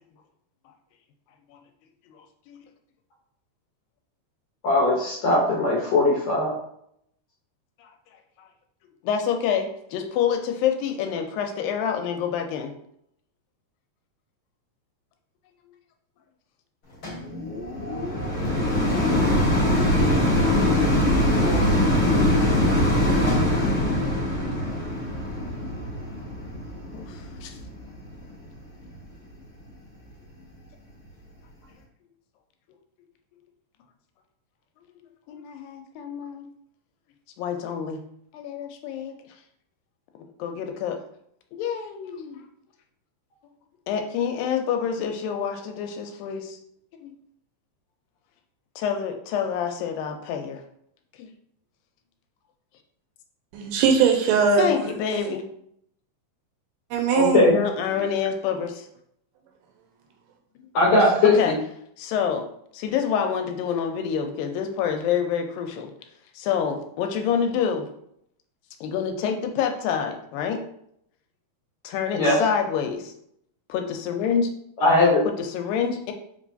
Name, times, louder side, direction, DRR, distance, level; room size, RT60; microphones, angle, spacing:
voice 1, 2.1-2.6 7.8-7.9 9.0-12.7 26.9-27.6 35.3-36.5 37.4-38.0 38.3-39.1 40.4-41.0 41.5-42.4 43.9-46.6 47.0-47.1 48.8-50.6 51.2-51.3 54.6-55.4 57.4-58.9 61.3-61.6 62.0-62.4 62.7-65.9 66.4-67.9 68.8-70.6 71.8-73.1 73.7-74.5 75.3-76.1, left 7 dB, 90° left, 4 dB, 2.3 m, -27 dB
voice 2, 4.6-6.6 21.4-21.7 57.1-57.6 60.7-61.5 72.1-72.4 74.8-75.2, left 2 dB, 70° left, -3 dB, 1.7 m, -19 dB
sound 1, 17.0-28.3 28.9-29.0, left 1 dB, 50° left, 1.1 m, -22 dB
voice 3, 53.5-54.9 56.9-57.4 60.9-61.0, right 6 dB, 85° right, 3 dB, 2.2 m, -20 dB
5.0 x 3.1 x 2.6 m, 0.72 s
omnidirectional pair, 4.0 m